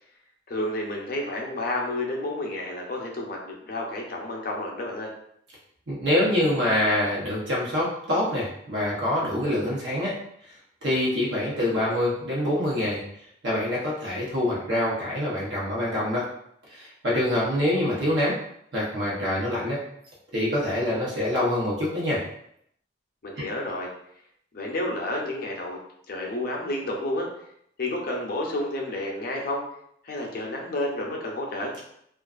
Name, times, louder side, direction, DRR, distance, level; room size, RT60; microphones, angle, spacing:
voice 1, 0.5-5.1 23.2-23.9 24.5-25.8 26.1-27.3 27.8-29.6 30.0-31.7, left 1 dB, 50° left, -1 dB, 0.5 m, -30 dB
voice 2, 5.9-10.2 10.8-13.0 13.4-16.3 16.7-18.4 18.7-19.8 20.3-22.2 23.4-23.5, left 1 dB, 70° right, -5 dB, 0.8 m, -25 dB
2.4 x 2.4 x 2.4 m, 0.72 s
head